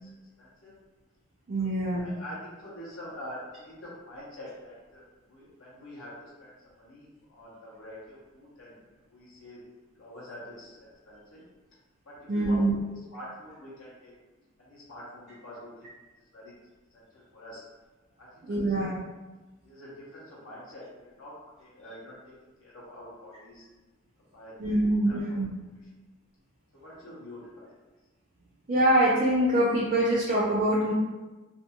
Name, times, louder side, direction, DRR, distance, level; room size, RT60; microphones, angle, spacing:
voice 1, 0.0-0.7 1.6-1.7 2.0-8.8 9.1-9.6 9.9-11.4 12.1-12.6 13.1-14.1 14.6-15.9 16.3-16.6 16.9-17.6 18.2-19.0 19.6-21.3 21.6-23.7 24.3-25.4 26.7-27.7, left 1 dB, 80° left, -7 dB, 0.7 m, -46 dB
voice 2, 1.5-2.1 12.3-12.7 18.5-19.0 24.6-25.5 28.7-30.9, right 1 dB, 40° right, -6 dB, 0.4 m, -24 dB
2.5 x 2.2 x 2.8 m, 1.2 s
head